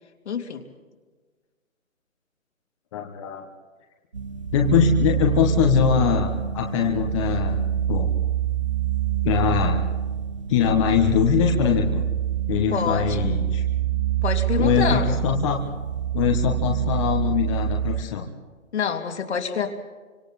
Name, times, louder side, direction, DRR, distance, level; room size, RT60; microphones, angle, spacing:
voice 1, 0.2-0.6 12.7-13.3 14.2-15.2 18.7-19.7, left 6 dB, 55° left, 4 dB, 3.1 m, -26 dB
voice 2, 2.9-3.5 4.5-8.1 9.2-9.8 10.5-12.0 12.5-13.6 14.6-15.6 16.1-18.3, left 7 dB, 25° left, 2 dB, 1.4 m, -22 dB
sound 1, 4.1-18.0, right 10 dB, 25° right, 0.5 m, -26 dB
27.5 x 25.5 x 4.3 m, 1.4 s
hypercardioid pair, 155°, 40 cm